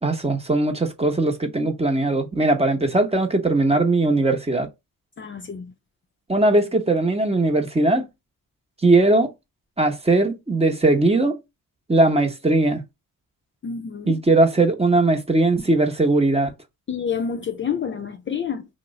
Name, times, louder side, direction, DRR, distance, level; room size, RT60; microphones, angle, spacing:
voice 1, 0.0-4.7 6.3-8.1 8.8-9.3 9.8-11.4 11.9-12.8 14.1-16.5, right 2 dB, 15° right, 0.8 m, -19 dB
voice 2, 5.2-5.7 13.6-14.1 16.9-18.7, left 7 dB, 35° left, 0.4 m, -28 dB
2.9 x 2.1 x 3.6 m
cardioid pair, 80°, 35 cm